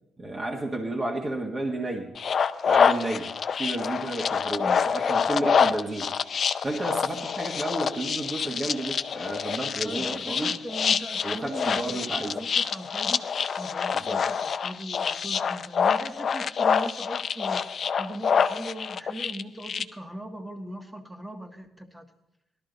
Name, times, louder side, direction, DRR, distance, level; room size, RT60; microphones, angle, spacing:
voice 1, 0.2-2.1 2.6-3.3 3.5-6.1 6.6-10.5 11.2-12.4 13.9-14.2, right 1 dB, 30° right, 0 dB, 1.6 m, -32 dB
sound 1, 2.2-19.8, left 6 dB, 50° left, 0.5 m, -26 dB
voice 2, 9.8-13.3 13.6-17.6 18.0-22.1, right 1 dB, 10° right, 5 dB, 1.6 m, -39 dB
17.5 x 12.5 x 4.0 m, 0.86 s
cardioid pair, 90°, 0 cm